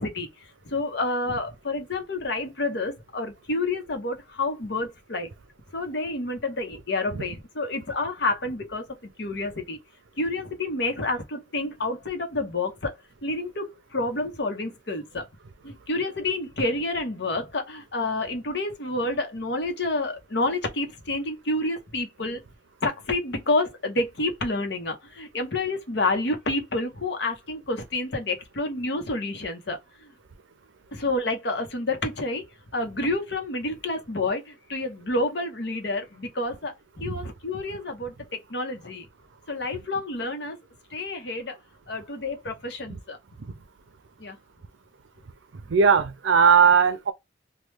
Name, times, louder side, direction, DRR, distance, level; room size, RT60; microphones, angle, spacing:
voice 1, 0.0-5.3 5.7-9.8 10.2-15.2 15.6-22.4 22.8-30.1 30.9-32.4 32.7-38.1 38.5-39.1 39.5-40.6 40.9-41.6 41.9-43.2 44.2-44.4, left 2 dB, 60° left, 0.8 m, -29 dB
voice 2, 45.7-47.1, right 6 dB, 75° right, 0.5 m, -19 dB
3.1 x 2.2 x 3.3 m
head